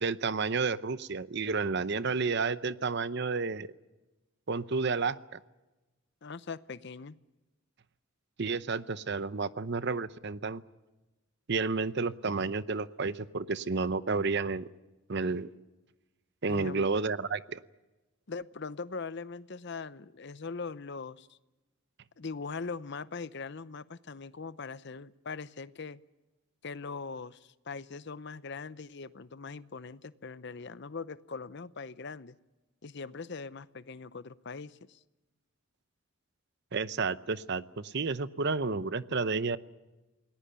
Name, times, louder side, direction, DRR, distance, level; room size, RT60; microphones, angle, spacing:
voice 1, 0.0-3.7 4.5-5.4 8.4-10.6 11.5-14.7 15.1-15.5 16.4-17.6 36.7-39.6, right 4 dB, 55° right, 15 dB, 0.7 m, -31 dB
voice 2, 6.2-7.2 16.5-16.9 18.3-21.4 22.2-26.0 26.6-32.4 32.8-35.0, left 4 dB, 55° left, 16 dB, 0.7 m, -41 dB
28.0 x 19.0 x 6.9 m, 1.1 s
head